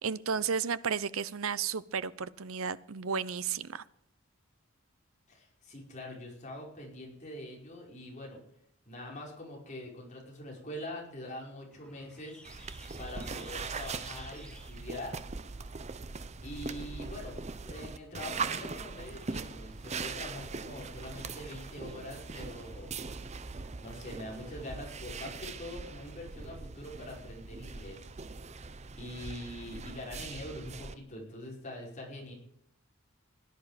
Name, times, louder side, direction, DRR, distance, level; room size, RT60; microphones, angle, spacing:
voice 1, 0.0-3.8, right 6 dB, 85° right, 17 dB, 0.7 m, -33 dB
voice 2, 5.3-8.4 8.9-12.4 13.0-15.2 16.4-17.4 17.6-22.9 23.8-28.1 29.0-32.3, left 1 dB, 35° left, -2 dB, 5.3 m, -44 dB
sound 1, 11.7-26.6, left 1 dB, 5° left, 1.9 m, -59 dB
sound 2, 12.4-30.9, right 4 dB, 35° right, 0.7 m, -41 dB
18.5 x 10.5 x 5.1 m, 0.74 s
head